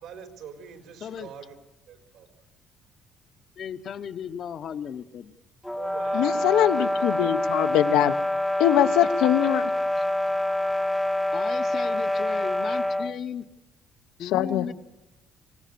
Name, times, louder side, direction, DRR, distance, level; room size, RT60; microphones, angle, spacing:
voice 1, 0.0-1.6 1.9-2.3 5.7-6.7, right 7 dB, 75° right, 6 dB, 4.4 m, -44 dB
voice 2, 3.6-5.4 10.0-10.1 11.3-13.4 14.2-14.7, left 8 dB, 45° left, 10 dB, 0.9 m, -35 dB
sound 1, 5.6-13.2, left 1 dB, ahead, 0.8 m, -26 dB
voice 3, 6.1-8.1 8.6-9.6 14.2-14.7, left 12 dB, 90° left, 9 dB, 1.0 m, -22 dB
25.0 x 18.0 x 6.8 m, 0.97 s
cardioid pair, 145°, 0 cm